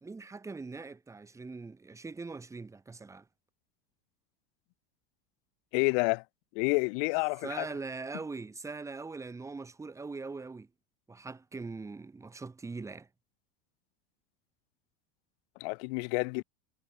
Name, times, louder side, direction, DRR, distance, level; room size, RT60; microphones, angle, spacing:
voice 1, 0.0-3.2 7.4-10.7 11.1-13.1, right 3 dB, 10° right, 1.4 m, -41 dB
voice 2, 5.7-6.2 6.5-7.7 15.6-16.4, left 35 dB, 55° left, 0.7 m, -29 dB
supercardioid pair, 155°, 36 cm